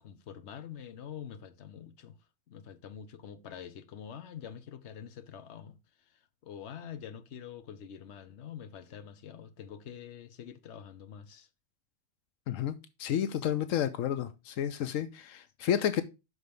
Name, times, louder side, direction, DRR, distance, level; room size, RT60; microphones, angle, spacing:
voice 1, 0.0-2.2 2.5-5.8 6.4-11.5, left 8 dB, 60° left, 1.1 m, -46 dB
voice 2, 12.5-16.0, left 10 dB, 85° left, 1.1 m, -31 dB
6.3 x 4.9 x 5.2 m
omnidirectional pair, 1.3 m